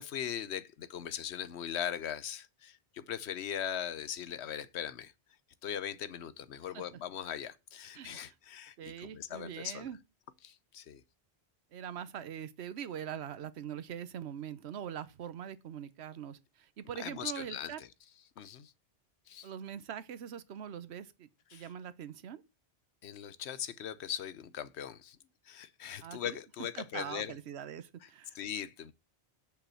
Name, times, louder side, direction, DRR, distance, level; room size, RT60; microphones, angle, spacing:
voice 1, 0.0-5.1 5.6-9.9 10.4-11.0 17.0-17.9 18.4-18.7 19.3-19.5 21.5-21.7 23.0-25.2 25.5-27.3 28.3-28.9, left 9 dB, 85° left, 1.0 m, -40 dB
voice 2, 7.9-8.3 8.8-10.0 11.7-17.8 19.4-22.4 26.0-26.4 26.8-28.4, right 9 dB, 80° right, 1.0 m, -43 dB
7.0 x 5.7 x 6.2 m
omnidirectional pair, 1.1 m